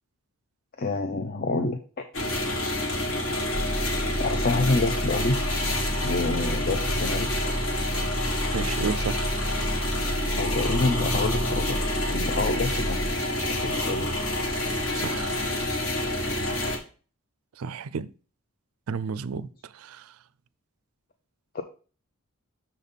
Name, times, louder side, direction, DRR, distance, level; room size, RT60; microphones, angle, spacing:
voice 1, 0.8-2.1 4.2-5.4 6.0-7.6 10.4-11.8 12.1-13.2 13.5-14.1 21.5-21.6, left 3 dB, 40° left, 0.5 m, -27 dB
sound 1, 2.1-16.8, left 1 dB, 60° left, 1.5 m, -28 dB
sound 2, 3.5-13.1, equal, 5° right, 0.7 m, -31 dB
voice 2, 8.5-9.4 14.9-15.4 17.6-18.1 18.9-19.5 19.7-20.0, right 6 dB, 75° right, 0.4 m, -32 dB
6.6 x 4.1 x 5.3 m
head